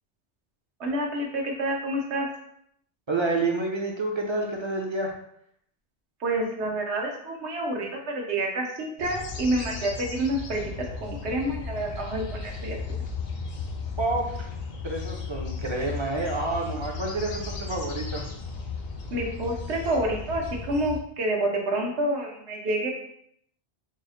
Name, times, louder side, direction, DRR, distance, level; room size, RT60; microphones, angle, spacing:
voice 1, 0.8-2.3 6.2-13.0 19.1-22.9, right 1 dB, 80° right, 0 dB, 1.1 m, -28 dB
voice 2, 3.1-5.1 14.0-14.5 14.8-18.3, right 2 dB, 40° right, 0 dB, 0.4 m, -29 dB
sound 1, 9.0-21.0, left 4 dB, 65° left, 0.7 m, -35 dB
4.2 x 2.1 x 3.7 m, 0.71 s
omnidirectional pair, 1.1 m